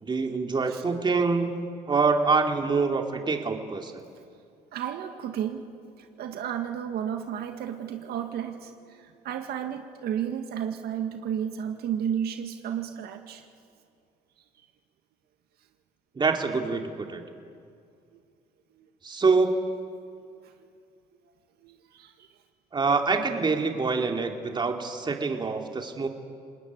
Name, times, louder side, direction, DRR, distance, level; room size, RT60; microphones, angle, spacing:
voice 1, 0.0-4.0 16.2-16.8 17.1-17.2 19.0-19.5 22.7-26.1, right 4 dB, 25° right, 4 dB, 2.6 m, -25 dB
voice 2, 4.7-5.7 6.0-13.5 18.1-18.2 18.7-18.9 20.0-20.7 21.6-22.3, right 9 dB, 70° right, 5 dB, 1.9 m, -33 dB
29.0 x 20.0 x 9.6 m, 2.3 s
cardioid pair, 110°, 17 cm